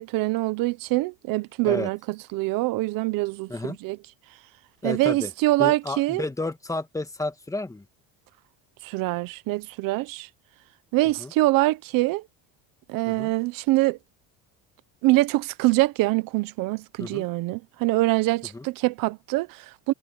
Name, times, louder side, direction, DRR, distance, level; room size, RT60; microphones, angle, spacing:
voice 1, 0.0-4.0 4.8-6.2 8.8-10.3 10.9-12.2 12.9-14.0 15.0-19.9, right 19 dB, 70° right, 1.2 m, -24 dB
voice 2, 4.8-5.3 5.6-7.8 11.2-11.3 13.1-13.3 17.0-17.2 18.5-18.6, left 2 dB, 10° left, 1.7 m, -31 dB
cardioid pair, 115°, 34 cm